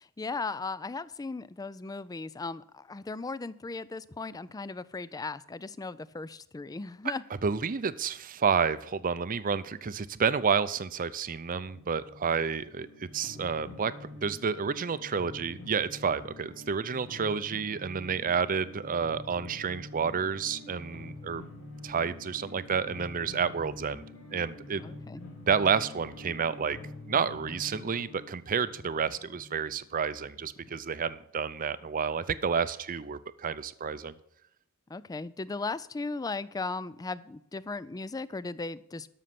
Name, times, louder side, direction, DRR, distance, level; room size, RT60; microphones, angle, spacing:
voice 1, 0.0-7.2 24.8-25.2 34.9-39.1, left 3 dB, 15° left, 18 dB, 0.3 m, -37 dB
voice 2, 7.4-13.9 14.2-21.4 21.8-24.0 24.3-24.8 25.5-26.8 27.1-34.1, right 6 dB, 40° right, 15 dB, 0.5 m, -30 dB
sound 1, 11.6-30.8, left 2 dB, 65° left, 4.0 m, -47 dB
12.5 x 6.6 x 5.9 m, 0.75 s
head